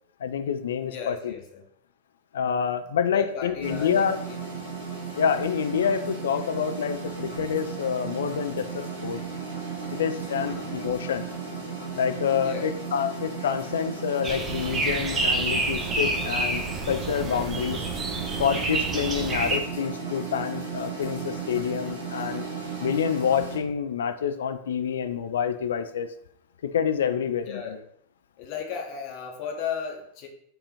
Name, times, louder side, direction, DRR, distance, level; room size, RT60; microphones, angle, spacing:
voice 1, 0.2-1.4 2.3-4.2 5.2-9.2 9.9-11.3 12.0-17.8 18.4-22.4 22.8-26.1 26.6-27.8, left 7 dB, 65° left, 10 dB, 0.3 m, -27 dB
voice 2, 0.8-1.6 3.1-4.4 10.4-10.9 12.4-12.7 17.2-17.6 19.1-19.5 27.5-27.8 28.4-30.3, left 7 dB, 45° left, 1 dB, 0.7 m, -36 dB
sound 1, 3.6-23.6, right 5 dB, 80° right, 1.2 m, -35 dB
sound 2, 14.2-19.6, right 2 dB, 20° right, 0.6 m, -28 dB
4.3 x 2.4 x 3.1 m, 0.69 s
figure-of-eight pair, 90°, 0 cm